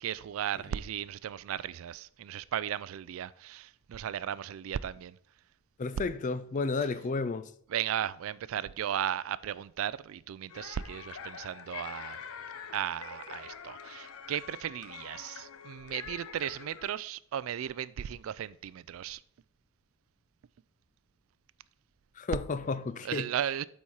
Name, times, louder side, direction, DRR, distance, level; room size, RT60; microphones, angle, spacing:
voice 1, 0.0-5.2 7.7-12.2 12.7-19.2 23.0-23.6, right 10 dB, 70° right, 0.3 m, -36 dB
voice 2, 5.8-7.5 22.2-23.3, left 4 dB, 35° left, 0.4 m, -32 dB
sound 1, 10.5-16.9, left 7 dB, 90° left, 0.6 m, -45 dB
8.4 x 4.3 x 4.5 m
head